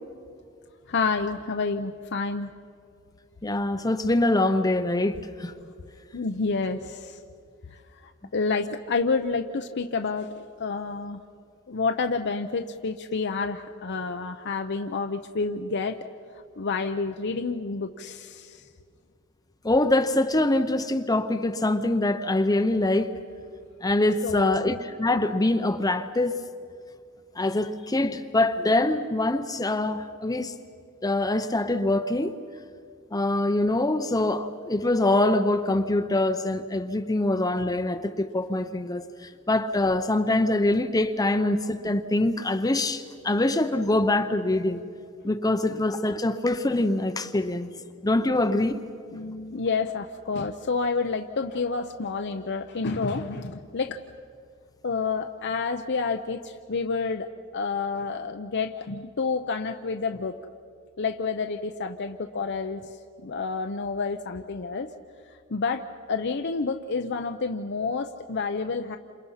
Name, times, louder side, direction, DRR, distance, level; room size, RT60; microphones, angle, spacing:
voice 1, 0.9-2.5 6.1-7.2 8.0-11.2 11.7-16.0 16.6-18.6 24.2-24.7 49.1-54.0 54.8-57.3 57.5-60.3 61.0-62.9 63.2-64.9 65.5-65.8 66.1-69.0, left 4 dB, 55° left, 0.7 m, -29 dB
voice 2, 3.4-5.5 19.6-23.2 23.8-26.4 27.4-30.5 31.0-32.4 33.1-39.1 39.5-44.8 45.2-47.7 48.0-48.8, left 2 dB, 15° left, 0.8 m, -24 dB
29.0 x 27.5 x 5.7 m
head